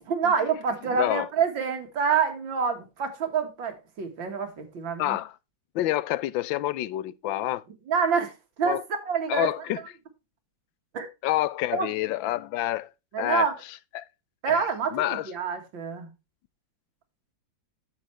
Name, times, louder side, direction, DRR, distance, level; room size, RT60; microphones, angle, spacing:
voice 1, 0.0-5.2 7.9-8.3 8.6-9.5 10.9-11.1 11.7-11.9 13.1-13.5 14.4-16.1, right 6 dB, 80° right, 2.4 m, -27 dB
voice 2, 0.8-1.3 5.0-5.4 5.7-7.6 8.7-8.8 9.3-9.8 11.2-12.9 13.2-13.5 13.9-14.0 14.5-14.6 14.9-15.3, left 15 dB, 85° left, 1.4 m, -28 dB
10.0 x 7.5 x 3.2 m
omnidirectional pair, 2.0 m